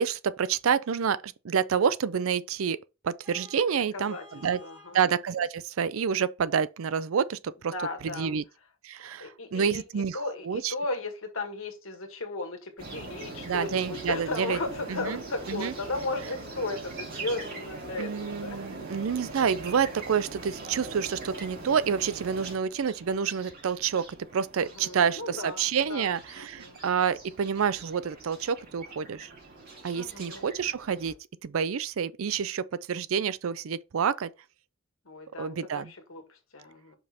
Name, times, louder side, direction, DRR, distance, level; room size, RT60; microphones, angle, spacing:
voice 1, 0.0-2.8 3.0-4.6 4.9-7.7 8.0-8.4 8.8-10.7 13.4-14.6 14.9-15.2 15.5-15.7 18.0-24.1 24.3-29.3 29.8-31.1 31.4-34.3 35.4-35.9, right 7 dB, 85° right, 0.4 m, -28 dB
Vehicle horn car horn honking, 3.2-5.0, left 2 dB, 10° right, 1.7 m, -51 dB
voice 2, 3.9-4.2 4.6-5.0 7.7-8.4 9.2-18.9 24.6-26.8 29.9-30.5 35.1-36.9, left 2 dB, 90° left, 1.6 m, -36 dB
sound 1, 12.8-31.1, right 2 dB, 50° right, 3.0 m, -42 dB
5.3 x 4.1 x 4.3 m
head